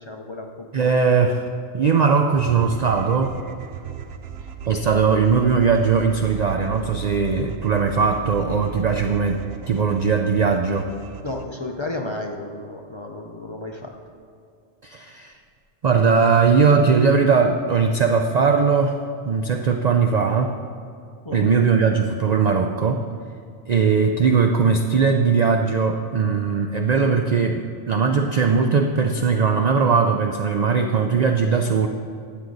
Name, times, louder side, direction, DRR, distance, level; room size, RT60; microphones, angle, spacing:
voice 1, 0.0-0.9 11.2-14.0 21.2-21.5, left 2 dB, 30° left, 1 dB, 0.6 m, -33 dB
voice 2, 0.7-1.4 1.7-3.3 4.7-9.4 9.7-10.9 14.8-15.3 15.8-19.0 19.2-20.5 21.3-23.0 23.7-31.9, right 5 dB, 50° right, 5 dB, 0.5 m, -19 dB
sound 1, 2.4-11.5, right 9 dB, 65° right, 0.9 m, -36 dB
12.5 x 8.7 x 4.0 m, 2.4 s
omnidirectional pair, 1.2 m